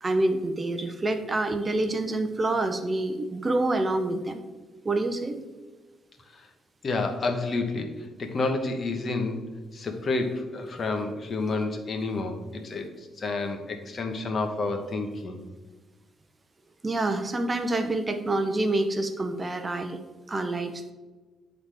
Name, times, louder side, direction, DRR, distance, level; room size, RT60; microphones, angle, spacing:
voice 1, 0.0-4.4 4.8-5.4 16.8-20.0 20.3-20.9, right 2 dB, 25° right, 8 dB, 0.6 m, -27 dB
voice 2, 6.8-12.9 13.2-15.4, left 3 dB, 45° left, 4 dB, 1.1 m, -29 dB
11.0 x 4.0 x 3.4 m, 1.3 s
cardioid pair, 90°, 0 cm